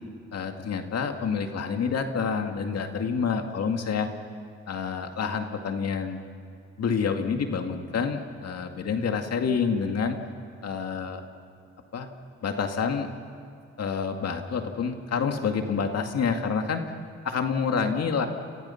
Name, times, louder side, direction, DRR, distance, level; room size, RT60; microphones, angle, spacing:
voice 1, 0.3-4.1 4.7-6.2 6.8-10.2 10.6-11.3 11.9-12.1 12.4-13.1 13.8-16.9 17.2-18.3, left 6 dB, 55° left, 5 dB, 2.2 m, -28 dB
30.0 x 27.5 x 5.8 m, 2.2 s
cardioid pair, 90°, 30 cm